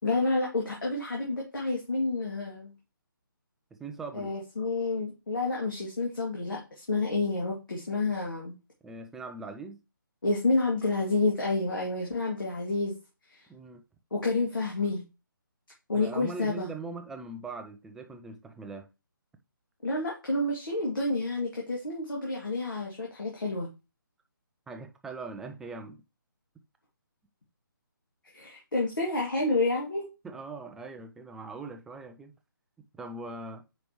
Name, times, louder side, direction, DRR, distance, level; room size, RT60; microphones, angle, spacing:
voice 1, 0.0-2.7 4.1-8.5 10.2-12.9 14.1-15.0 15.9-16.7 19.8-23.7 28.3-30.1, left 2 dB, 65° left, 2.4 m, -29 dB
voice 2, 3.7-4.3 8.8-9.8 13.5-13.8 15.9-18.9 24.7-26.0 30.2-32.3 33.0-33.6, right 3 dB, 5° right, 0.3 m, -41 dB
6.6 x 5.0 x 3.1 m
figure-of-eight pair, 145°, 12 cm